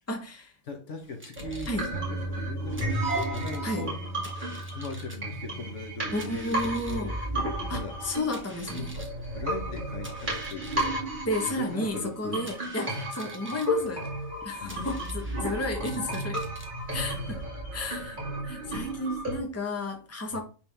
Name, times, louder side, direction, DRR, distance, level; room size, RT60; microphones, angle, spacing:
voice 1, 0.1-0.5 1.7-1.9 3.6-3.9 6.1-7.1 7.7-9.0 11.3-14.1 14.4-16.4 16.9-17.4 17.7-18.2 18.4-20.4, left 1 dB, 10° left, 1.1 m, -32 dB
voice 2, 0.6-3.0 3.3-4.0 4.5-7.2 7.7-8.0 9.3-11.0 11.4-12.5 14.6-15.0 20.3-20.4, left 3 dB, 65° left, 1.5 m, -39 dB
sound 1, 1.0-17.4, right 1 dB, 10° right, 1.2 m, -50 dB
sound 2, 1.4-19.4, right 1 dB, 35° right, 2.5 m, -33 dB
Bass guitar, 1.9-8.2, right 2 dB, 65° right, 1.2 m, -39 dB
9.7 x 3.6 x 3.5 m
omnidirectional pair, 1.4 m